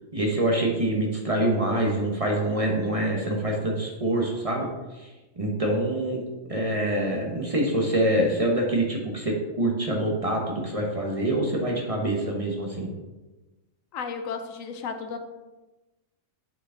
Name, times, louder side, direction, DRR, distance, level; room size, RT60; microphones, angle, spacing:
voice 1, 0.1-4.7 5.0-5.1 5.4-6.2 6.5-12.9, right 1 dB, 30° right, 0 dB, 0.9 m, -25 dB
voice 2, 13.9-15.2, left 5 dB, 85° left, 7 dB, 1.1 m, -33 dB
7.7 x 4.6 x 3.8 m, 1.1 s
omnidirectional pair, 1.4 m